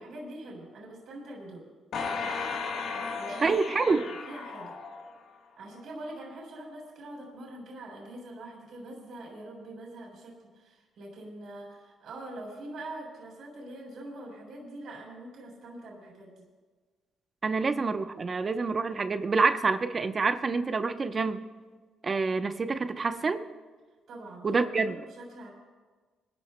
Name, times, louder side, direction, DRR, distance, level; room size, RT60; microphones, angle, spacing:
voice 1, 0.0-1.6 3.2-3.5 3.9-4.8 5.6-16.4 24.1-25.5, right 1 dB, 70° right, -2 dB, 3.6 m, -44 dB
sound 1, 1.9-5.4 5.9-6.0, left 4 dB, 70° left, 1.3 m, -35 dB
voice 2, 3.4-4.0 17.4-21.5 22.0-23.5 24.4-24.9, right 4 dB, 35° right, 9 dB, 0.8 m, -27 dB
25.5 x 12.5 x 2.2 m, 1.4 s
cardioid pair, 90°, 0 cm